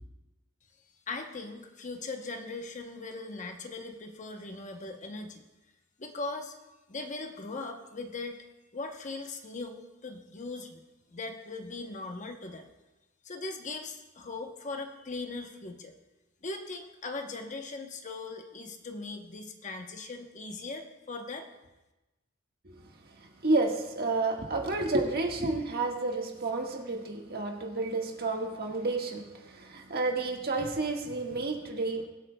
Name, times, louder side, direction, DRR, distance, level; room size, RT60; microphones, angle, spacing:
voice 1, 1.1-5.4 6.0-6.5 6.9-8.4 8.7-10.8 11.1-12.7 13.2-15.9 16.4-21.5, left 3 dB, 35° left, 5 dB, 0.8 m, -39 dB
voice 2, 23.4-32.1, right 2 dB, 50° right, 1 dB, 1.5 m, -30 dB
22.0 x 8.4 x 2.2 m, 1.1 s
head